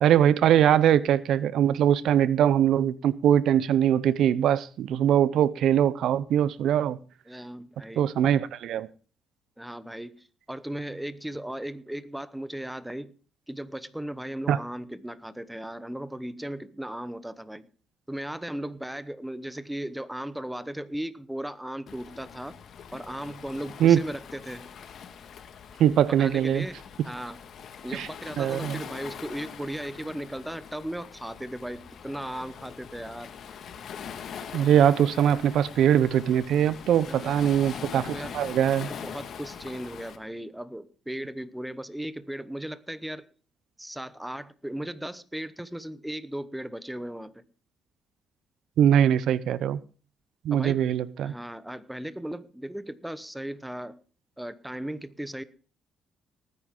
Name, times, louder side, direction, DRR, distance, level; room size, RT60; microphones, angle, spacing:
voice 1, 0.0-7.0 8.0-8.9 14.5-14.6 23.8-24.0 25.8-26.7 27.9-28.1 28.4-28.8 34.5-38.9 48.8-49.8 50.4-51.3, right 10 dB, 75° right, 0.5 m, -22 dB
voice 2, 7.3-8.1 9.6-13.1 13.5-17.7 18.1-22.6 22.9-24.6 26.2-27.4 27.8-33.3 37.0-37.5 38.1-38.4 38.9-43.3 43.8-47.4 50.5-50.8 51.2-54.0 54.4-55.4, right 1 dB, 5° right, 1.0 m, -37 dB
Waves surf, 21.9-40.2, left 7 dB, 65° left, 1.7 m, -43 dB
19.0 x 9.6 x 3.7 m
cardioid pair, 90°, 0 cm